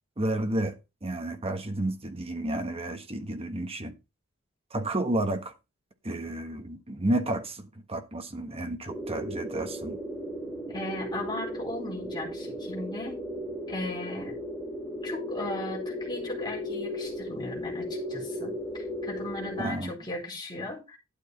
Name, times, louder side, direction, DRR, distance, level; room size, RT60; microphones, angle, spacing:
voice 1, 0.2-0.8 1.0-3.9 4.7-5.5 6.0-10.0 19.6-19.9, right 1 dB, 30° right, 1.4 m, -31 dB
sound 1, 8.9-19.7, equal, ahead, 2.1 m, -36 dB
voice 2, 10.7-13.2 13.7-14.4 15.0-21.0, left 2 dB, 20° left, 4.3 m, -37 dB
12.0 x 6.5 x 4.0 m
head